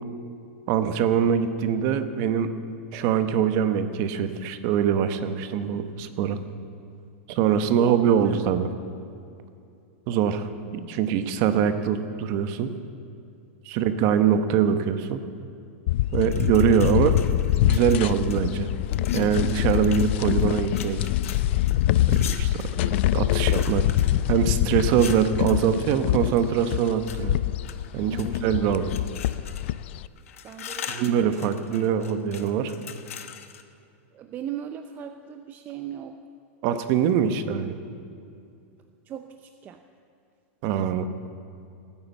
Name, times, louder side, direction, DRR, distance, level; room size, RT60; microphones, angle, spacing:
voice 1, 0.7-2.5 2.9-6.4 7.3-8.7 10.1-10.5 10.9-12.7 13.7-15.2 16.1-17.2 17.6-18.7 19.1-21.0 22.1-22.5 22.8-23.9 24.3-27.4 27.9-28.9 30.9-32.7 36.6-37.8 40.6-41.1, right 8 dB, 40° right, 10 dB, 1.0 m, -23 dB
voice 2, 7.8-8.3 28.1-28.4 30.4-31.0 31.3-31.4 34.1-36.2 39.1-39.8, right 9 dB, 25° right, 7 dB, 0.5 m, -37 dB
sound 1, 15.9-30.1, left 14 dB, 55° left, 0.4 m, -25 dB
sound 2, 16.1-18.5 18.9-25.7 26.3-27.2 27.6-28.5 28.9-29.8 30.2-33.6, left 9 dB, 85° left, 1.1 m, -42 dB
17.5 x 9.8 x 7.2 m, 2.6 s
supercardioid pair, 150°, 7 cm